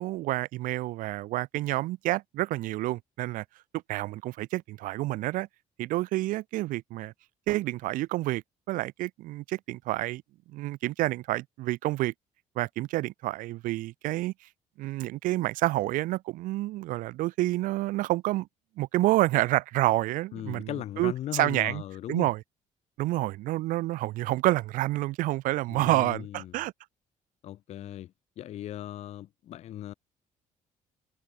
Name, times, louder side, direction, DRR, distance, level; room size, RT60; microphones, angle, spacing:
voice 1, 0.0-3.4 3.7-5.5 5.8-7.1 7.5-10.2 10.5-12.1 12.6-14.3 14.8-18.5 18.8-21.8 22.1-22.4 23.0-26.7, right 17 dB, 90° right, 0.5 m, -28 dB
voice 2, 20.3-22.3 25.7-26.6 27.4-29.9, left 12 dB, 55° left, 0.5 m, -38 dB
cardioid pair, 155°, 13 cm